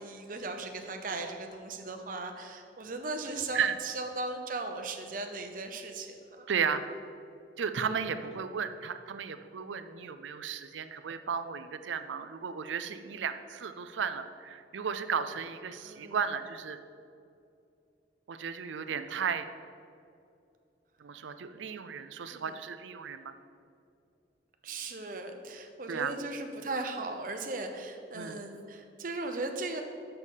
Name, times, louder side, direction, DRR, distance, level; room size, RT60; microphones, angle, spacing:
voice 1, 0.0-6.5 15.8-16.2 22.3-22.6 24.6-29.8, right 2 dB, 45° right, 5 dB, 0.7 m, -37 dB
voice 2, 6.5-6.8 7.6-16.8 18.3-19.5 21.0-23.4 25.9-26.1 28.1-28.4, right 6 dB, 90° right, 10 dB, 0.5 m, -34 dB
6.6 x 6.4 x 5.5 m, 2.5 s
head